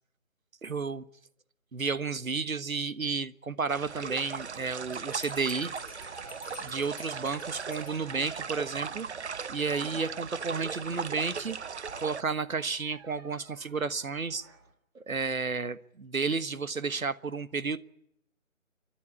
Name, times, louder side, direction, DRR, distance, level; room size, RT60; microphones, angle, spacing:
voice 1, 0.6-1.0 1.7-5.7 6.6-9.1 9.5-11.6 12.0-14.5 14.9-17.8, right 4 dB, 85° right, 14 dB, 1.5 m, -32 dB
sound 1, 3.7-12.2, right 6 dB, 55° right, 0.8 m, -38 dB
Bell, 4.9-8.6, left 7 dB, 25° left, 1.1 m, -51 dB
sound 2, 5.1-14.7, right 4 dB, 20° right, 1.9 m, -53 dB
29.5 x 12.5 x 9.8 m, 0.78 s
figure-of-eight pair, 160°, 40 cm